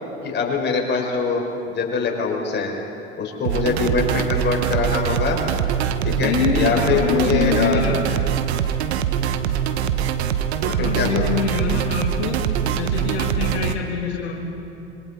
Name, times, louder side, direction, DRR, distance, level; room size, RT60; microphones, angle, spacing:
voice 1, 0.2-2.7 3.2-5.4 6.0-7.8 10.6-11.4, left 4 dB, 35° left, 0 dB, 4.9 m, -23 dB
sound 1, 3.4-13.7, right 9 dB, 70° right, 1.1 m, -23 dB
voice 2, 6.2-8.2 10.6-14.3, left 7 dB, 75° left, -2 dB, 2.2 m, -25 dB
26.0 x 24.0 x 4.3 m, 2.9 s
hypercardioid pair, 75°, 33 cm